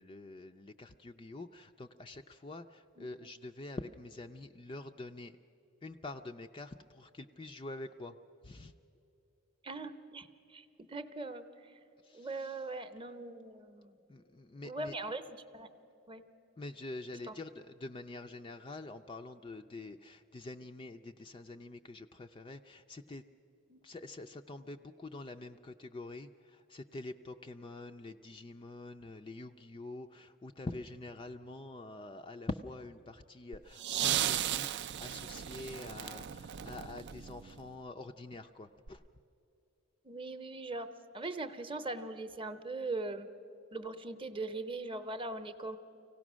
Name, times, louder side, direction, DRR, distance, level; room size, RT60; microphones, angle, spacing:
voice 1, 0.0-5.3 5.8-8.2 8.4-8.7 12.0-12.6 14.1-14.9 16.6-23.2 23.8-39.0, left 2 dB, 20° left, 6 dB, 0.4 m, -46 dB
voice 2, 9.6-11.8 12.1-14.0 14.6-15.7 16.1-16.2 17.3-17.4 23.7-23.8 36.1-36.2 40.0-43.3 43.7-45.8, right 2 dB, 25° right, 9 dB, 0.8 m, -41 dB
sound 1, 33.5-37.7 38.9-39.0, right 11 dB, 50° right, 0.4 m, -36 dB
25.0 x 17.0 x 6.2 m, 2.8 s
head